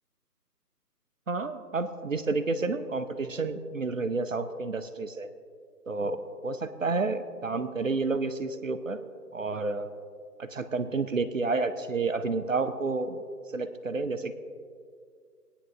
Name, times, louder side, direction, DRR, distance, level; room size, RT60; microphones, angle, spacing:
voice 1, 1.3-5.3 5.9-9.0 9.3-9.9 10.4-13.2 13.5-14.3, right 3 dB, 50° right, 11 dB, 0.6 m, -30 dB
21.0 x 9.8 x 2.3 m, 2.2 s
figure-of-eight pair, 150°, 49 cm